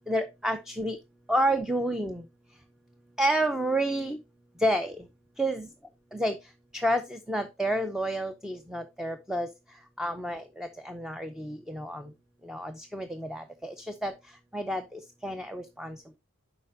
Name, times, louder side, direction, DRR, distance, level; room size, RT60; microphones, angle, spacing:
voice 1, 0.1-1.0 1.3-2.3 3.2-4.2 4.6-5.0 5.4-5.7 6.1-6.4 6.7-9.5 10.0-12.1 12.4-14.1 14.5-16.2, right 1 dB, 5° right, 0.5 m, -30 dB
9.6 x 5.8 x 2.6 m
head